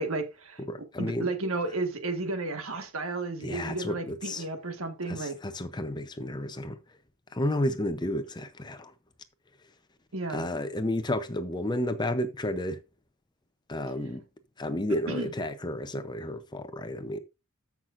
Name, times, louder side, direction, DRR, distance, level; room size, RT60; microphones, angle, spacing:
voice 1, 0.0-0.6 1.0-5.4 10.1-10.5 15.1-15.3, right 2 dB, 70° right, 1.6 m, -33 dB
voice 2, 0.7-1.3 3.4-4.4 5.1-6.8 7.3-8.9 10.3-12.8 13.7-14.2 14.6-17.2, left 1 dB, 20° left, 0.6 m, -31 dB
13.5 x 5.9 x 2.5 m
head